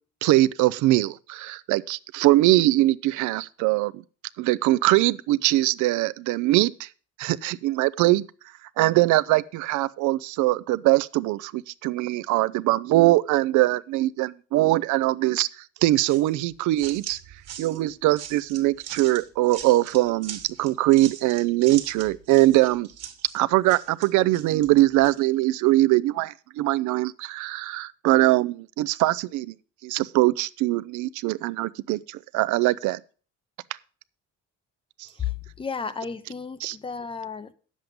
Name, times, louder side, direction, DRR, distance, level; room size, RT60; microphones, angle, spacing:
voice 1, 0.2-4.0 4.4-6.9 7.2-8.3 8.8-15.5 15.8-17.2 17.6-22.9 23.3-29.5 29.8-33.0 35.0-35.1 36.6-36.8, right 17 dB, 80° right, 0.5 m, -22 dB
sound 1, 16.1-25.2, right 9 dB, 55° right, 1.5 m, -41 dB
voice 2, 35.2-37.5, left 6 dB, 20° left, 0.5 m, -33 dB
9.3 x 7.5 x 5.1 m
cardioid pair, 160°, 29 cm